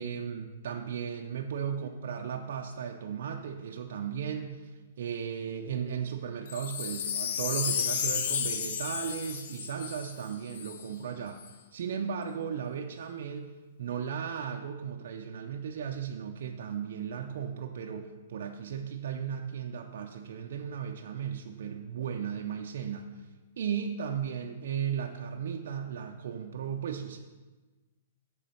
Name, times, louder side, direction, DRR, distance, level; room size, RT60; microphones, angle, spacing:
voice 1, 0.0-11.4 11.7-23.3 23.6-27.2, right 7 dB, 70° right, 3 dB, 0.4 m, -36 dB
Wind chime, 6.5-10.8 11.4-11.5, left 8 dB, 60° left, 0.5 m, -33 dB
7.4 x 3.8 x 5.5 m, 1.2 s
hypercardioid pair, 145°, 0 cm